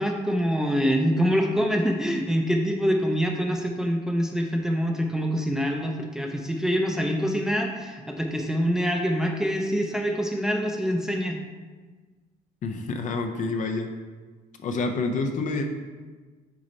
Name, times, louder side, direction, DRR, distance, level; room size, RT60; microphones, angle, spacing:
voice 1, 0.0-11.4, equal, 5° right, 2 dB, 0.6 m, -25 dB
voice 2, 12.6-13.9 14.6-15.7, left 3 dB, 50° left, 5 dB, 0.6 m, -28 dB
6.2 x 4.1 x 4.1 m, 1.4 s
cardioid pair, 110°, 17 cm